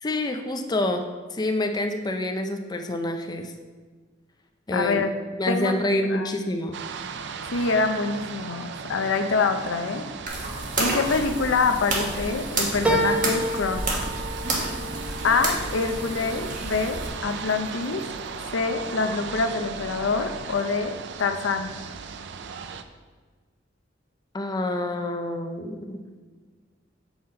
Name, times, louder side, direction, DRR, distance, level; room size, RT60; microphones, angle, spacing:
voice 1, 0.0-1.0 1.3-3.5 4.7-5.0 5.4-6.8 24.3-26.0, left 1 dB, 20° left, 5 dB, 0.5 m, -27 dB
voice 2, 4.7-5.1 5.5-5.7 6.1-6.3 7.5-10.1 10.8-14.0 15.2-18.0 18.5-20.9 21.2-21.7, left 4 dB, 85° left, 7 dB, 0.6 m, -25 dB
sound 1, 6.7-22.8, right 5 dB, 65° right, 0.5 m, -37 dB
sound 2, 10.3-17.1, right 2 dB, 45° right, 1.5 m, -30 dB
sound 3, 12.8-17.6 18.1-18.8 19.2-19.3, right 1 dB, 10° right, 0.8 m, -30 dB
7.1 x 5.7 x 4.3 m, 1.4 s
head